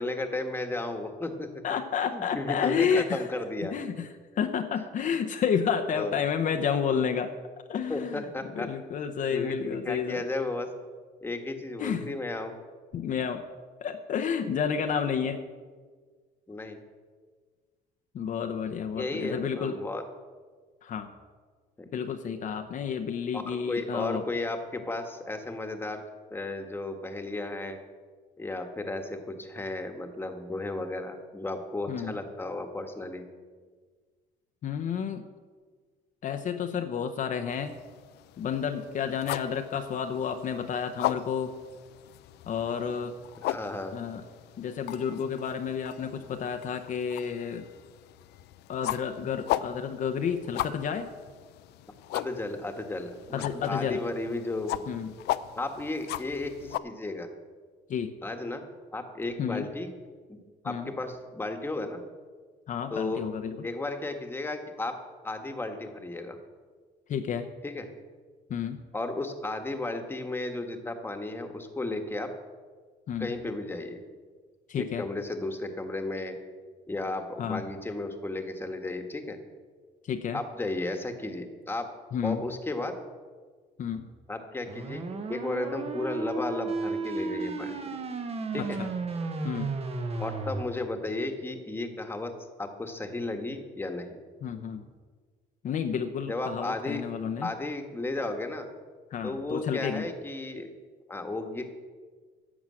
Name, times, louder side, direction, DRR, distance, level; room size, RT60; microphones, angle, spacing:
voice 1, 0.0-1.5 2.1-3.7 5.9-6.2 7.9-8.7 9.3-10.7 11.2-12.6 16.5-16.8 18.9-20.0 21.8-22.1 23.3-26.0 26.3-27.8 28.4-33.3 43.4-44.0 52.1-54.9 55.6-57.3 58.2-58.7 58.9-59.9 60.3-60.4 60.6-62.0 62.9-63.2 63.6-65.0 65.2-66.4 67.6-67.9 68.9-72.3 73.2-74.0 74.8-76.4 76.9-79.4 80.3-81.9 82.2-83.0 84.3-85.0 85.3-87.9 88.5-88.8 90.2-92.3 92.6-94.2 96.3-97.0 97.4-98.7 99.2-100.7 101.1-101.7, left 2 dB, 15° left, 5 dB, 1.4 m, -34 dB
voice 2, 1.6-3.2 3.7-4.1 4.4-7.3 7.7-8.2 8.6-10.2 11.8-12.1 12.9-13.4 13.8-15.4 18.1-19.8 20.8-21.1 21.9-24.2 31.9-32.1 34.6-35.2 36.2-37.7 38.4-41.5 42.5-43.1 43.9-44.2 44.6-47.6 48.7-51.1 53.3-54.0 54.9-55.1 57.9-58.1 59.4-59.7 60.6-60.9 62.7-63.6 67.1-67.5 68.5-68.8 73.1-73.3 74.7-75.0 77.4-77.6 80.1-80.4 82.1-82.4 83.8-84.1 88.6-88.9 89.4-89.7 94.4-94.8 95.6-97.5 99.1-100.1, left 7 dB, 50° left, 6 dB, 0.8 m, -30 dB
sound 1, 37.5-56.8, left 14 dB, 80° left, 0.5 m, -38 dB
sound 2, 84.7-90.6, right 3 dB, 35° right, 1.2 m, -33 dB
11.0 x 7.2 x 7.6 m, 1.6 s
cardioid pair, 110°, 17 cm